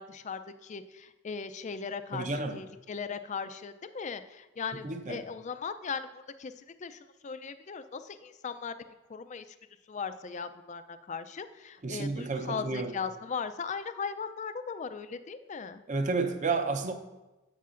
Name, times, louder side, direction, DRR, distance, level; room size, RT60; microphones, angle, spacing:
voice 1, 0.0-8.8 9.1-9.4 9.9-15.8, left 5 dB, 35° left, 11 dB, 0.4 m, -38 dB
voice 2, 2.1-2.6 4.7-5.2 11.8-13.0 15.9-16.9, right 3 dB, 35° right, 7 dB, 0.6 m, -31 dB
11.0 x 8.5 x 2.5 m, 1.1 s
head